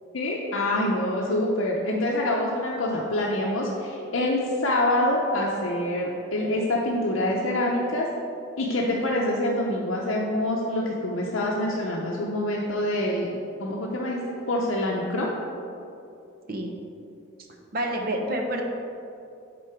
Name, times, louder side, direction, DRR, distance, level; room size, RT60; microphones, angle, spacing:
voice 1, 0.1-8.1 8.6-13.3 13.6-14.2 14.5-15.3, left 1 dB, 75° left, -2 dB, 0.6 m, -26 dB
voice 2, 17.7-18.6, right 1 dB, 50° right, 2 dB, 0.8 m, -28 dB
8.3 x 3.8 x 4.4 m, 2.6 s
head